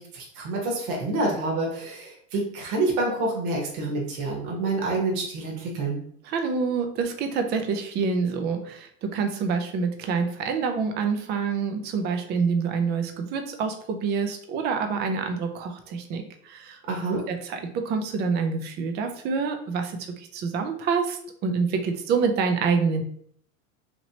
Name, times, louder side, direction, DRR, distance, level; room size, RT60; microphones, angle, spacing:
voice 1, 0.0-6.0 16.9-17.2, right 2 dB, 45° right, -1 dB, 1.1 m, -27 dB
voice 2, 6.3-16.8 17.1-23.0, right 5 dB, 25° right, 6 dB, 0.4 m, -27 dB
2.9 x 2.9 x 2.8 m, 0.63 s
hypercardioid pair, 115°, 41 cm